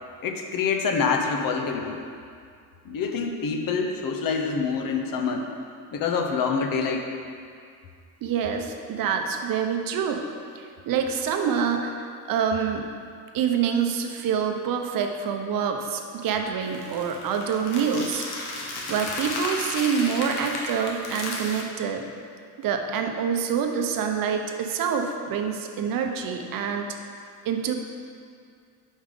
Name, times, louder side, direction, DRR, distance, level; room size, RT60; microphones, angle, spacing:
voice 1, 0.2-2.0 2.8-5.5 5.9-7.1, left 5 dB, 55° left, 3 dB, 0.8 m, -26 dB
voice 2, 8.2-10.2 10.5-11.9 12.3-12.8 13.3-18.2 18.9-22.0 22.6-26.9 27.4-27.7, right 7 dB, 55° right, 4 dB, 0.7 m, -26 dB
sound 1, 16.6-21.6, left 2 dB, 75° left, 1.3 m, -33 dB
5.4 x 5.0 x 5.2 m, 2.3 s
cardioid pair, 100°, 40 cm